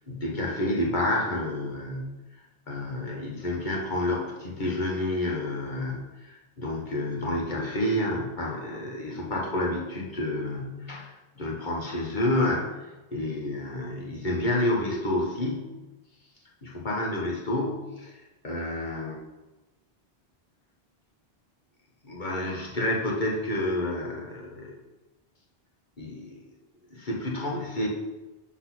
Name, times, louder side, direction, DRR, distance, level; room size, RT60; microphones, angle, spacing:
voice 1, 0.1-2.1 2.7-12.7 13.1-15.7 16.6-18.1 18.4-19.2 22.0-24.7 26.0-26.4 26.9-27.9, left 1 dB, 50° left, -3 dB, 1.5 m, -29 dB
6.1 x 4.0 x 6.0 m, 1.1 s
omnidirectional pair, 1.0 m